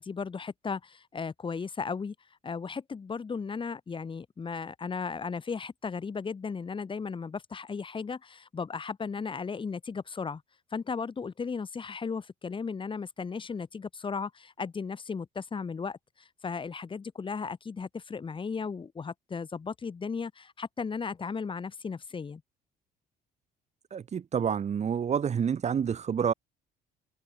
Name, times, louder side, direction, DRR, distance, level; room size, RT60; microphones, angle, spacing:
voice 1, 0.0-2.1 2.4-10.4 10.7-22.4, left 5 dB, 30° left, 7.1 m, -36 dB
voice 2, 23.9-26.3, right 7 dB, 40° right, 3.4 m, -28 dB
cardioid pair, 110°, 17 cm